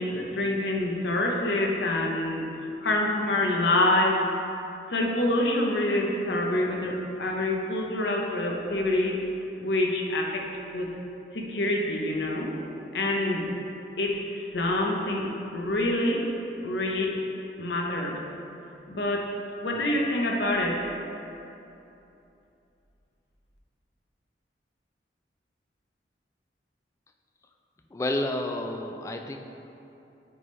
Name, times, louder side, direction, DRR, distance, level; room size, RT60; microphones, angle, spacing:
voice 1, 0.0-2.5 2.8-4.2 4.9-9.2 9.6-10.9 11.3-12.6 12.9-13.5 14.0-16.3 16.6-17.2 17.6-18.2 18.9-19.3 19.6-20.9, left 1 dB, 70° left, 0 dB, 0.7 m, -26 dB
voice 2, 27.9-29.4, left 1 dB, 15° left, 4 dB, 0.3 m, -30 dB
9.4 x 3.5 x 3.2 m, 2.9 s
head